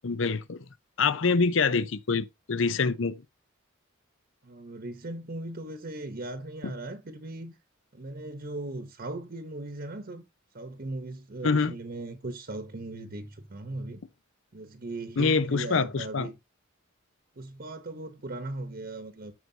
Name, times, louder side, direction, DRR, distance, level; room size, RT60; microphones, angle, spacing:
voice 1, 0.0-0.6 1.0-3.1 11.4-11.7 15.2-16.3, left 4 dB, 70° left, 0.6 m, -25 dB
voice 2, 4.4-7.5 7.9-10.2 10.5-14.0 14.5-16.4 17.4-19.3, right 2 dB, 45° right, 1.0 m, -38 dB
13.5 x 4.7 x 2.8 m
head